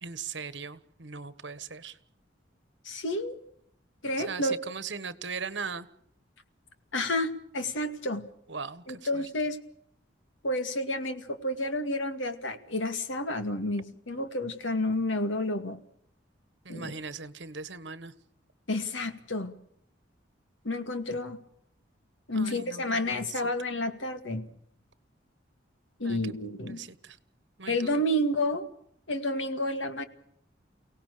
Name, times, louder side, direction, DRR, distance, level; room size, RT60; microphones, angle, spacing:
voice 1, 0.0-2.0 4.2-5.9 8.5-9.2 16.6-18.1 22.3-22.8 23.1-23.4 26.0-26.3 26.7-27.2 27.6-28.0, right 5 dB, 70° right, 14 dB, 1.4 m, -39 dB
voice 2, 2.8-3.4 4.0-4.6 6.9-8.3 8.9-9.6 10.4-15.8 16.7-16.9 18.7-19.6 20.6-21.4 22.3-24.5 26.0-26.8 27.7-28.7 29.1-30.0, left 1 dB, 85° left, 8 dB, 2.3 m, -30 dB
29.5 x 18.0 x 6.7 m, 0.70 s
head